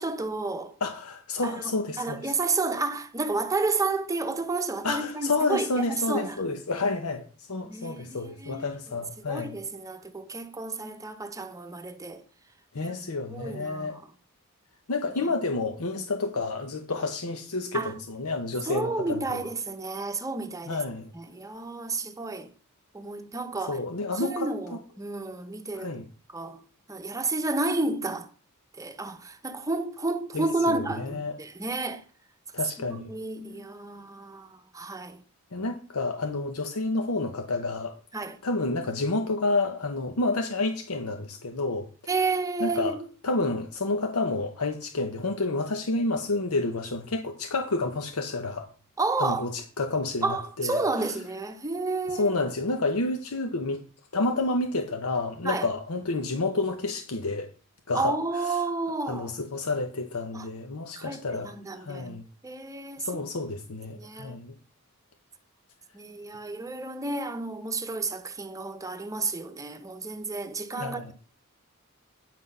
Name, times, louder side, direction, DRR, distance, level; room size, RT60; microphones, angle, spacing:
voice 1, 0.0-0.7 1.4-1.6 2.0-6.4 7.6-8.7 9.3-12.2 12.8-12.9 13.3-14.0 17.7-17.9 18.7-20.8 21.1-22.5 22.9-23.8 24.2-25.9 26.3-26.6 26.9-28.3 28.8-32.0 32.9-35.2 38.1-38.4 42.1-43.1 49.0-49.4 50.2-52.4 55.4-55.7 57.9-59.3 60.3-60.5 61.0-62.2 62.4-63.1 64.0-64.4 65.9-71.1, right 3 dB, 15° right, 0.8 m, -31 dB
voice 2, 0.8-2.3 4.8-7.2 7.5-9.5 12.7-14.0 14.9-19.4 20.7-21.1 23.7-24.8 25.7-26.1 30.3-31.3 32.5-33.1 35.5-38.0 38.4-41.9 42.6-43.0 43.2-48.7 49.2-50.8 52.1-53.8 54.1-57.5 57.9-58.6 59.1-62.2 63.0-64.5 70.7-71.1, left 3 dB, 85° left, 0.9 m, -29 dB
9.1 x 6.0 x 5.5 m
head